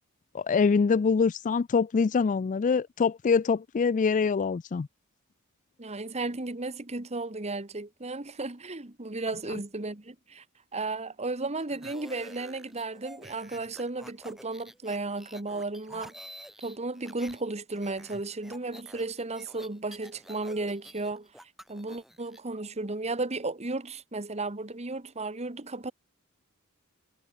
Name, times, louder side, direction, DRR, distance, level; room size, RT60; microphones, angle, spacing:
voice 1, 0.3-4.9, left 5 dB, 35° left, 0.3 m, -24 dB
voice 2, 5.8-10.4 10.7-16.1 16.6-21.3 21.7-25.9, right 3 dB, 30° right, 1.4 m, -34 dB
sound 1, 11.6-17.4 17.7-22.4, equal, ahead, 4.3 m, -49 dB
head